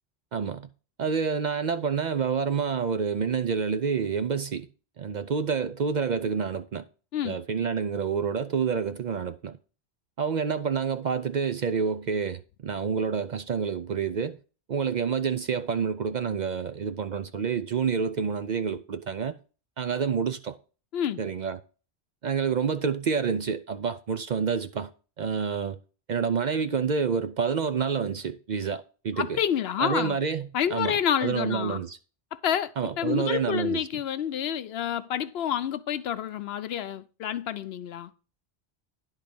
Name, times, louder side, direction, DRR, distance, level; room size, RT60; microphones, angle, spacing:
voice 1, 0.3-0.7 1.0-4.7 5.0-6.8 7.2-9.6 10.2-14.4 14.7-19.4 19.8-20.6 21.2-21.6 22.2-24.9 25.2-25.8 26.1-29.4 29.8-32.0 32.8-33.9, right 6 dB, 55° right, 0.6 m, -28 dB
voice 2, 29.2-30.2 30.5-31.8 32.3-38.1, left 9 dB, 75° left, 0.8 m, -29 dB
10.5 x 3.8 x 6.9 m
omnidirectional pair, 1.1 m